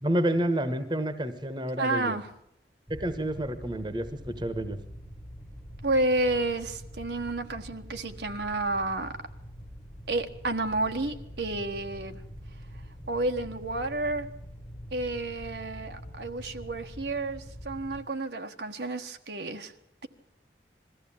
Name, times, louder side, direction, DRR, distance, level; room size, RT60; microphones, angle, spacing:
voice 1, 0.0-2.2 2.9-4.8, right 1 dB, 25° right, 1.3 m, -29 dB
voice 2, 1.8-2.3 5.8-9.1 10.1-12.2 13.1-14.3 14.9-19.7, right 2 dB, 75° right, 1.4 m, -30 dB
sound 1, 2.9-18.0, equal, 5° left, 1.4 m, -45 dB
21.5 x 14.5 x 8.7 m
head